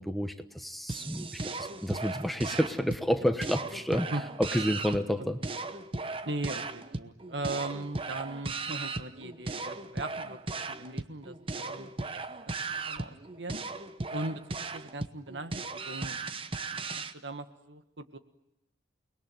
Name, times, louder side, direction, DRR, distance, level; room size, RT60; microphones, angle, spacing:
voice 1, 0.0-4.1 4.4-5.4, equal, ahead, 7 dB, 1.2 m, -30 dB
sound 1, 0.9-17.1, right 3 dB, 30° right, 0.9 m, -37 dB
voice 2, 6.2-10.4 10.7-12.5 12.8-13.6 14.1-18.2, right 2 dB, 85° right, 9 dB, 1.7 m, -39 dB
29.0 x 20.5 x 9.3 m, 0.85 s
head